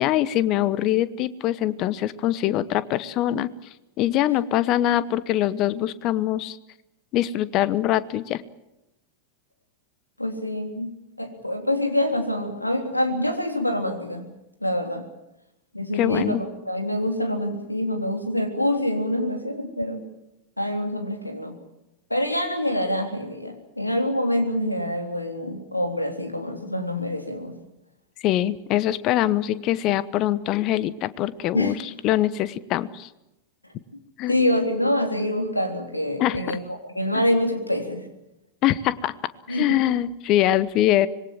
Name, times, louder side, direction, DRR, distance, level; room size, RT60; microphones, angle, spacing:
voice 1, 0.0-3.5 4.0-6.6 7.1-8.4 16.0-16.4 28.2-31.8 32.0-33.1 34.2-34.3 36.2-36.4 37.1-37.2 38.6-39.1 39.5-41.1, left 13 dB, 40° left, 17 dB, 1.1 m, -23 dB
voice 2, 10.2-10.9 11.2-14.3 14.6-15.1 15.7-20.0 20.6-21.6 22.1-27.6 31.5-31.7 34.3-36.6 36.9-38.1 39.5-39.8, left 1 dB, 85° left, 5 dB, 3.5 m, -26 dB
25.5 x 22.0 x 7.4 m, 0.90 s
figure-of-eight pair, 90°, 0 cm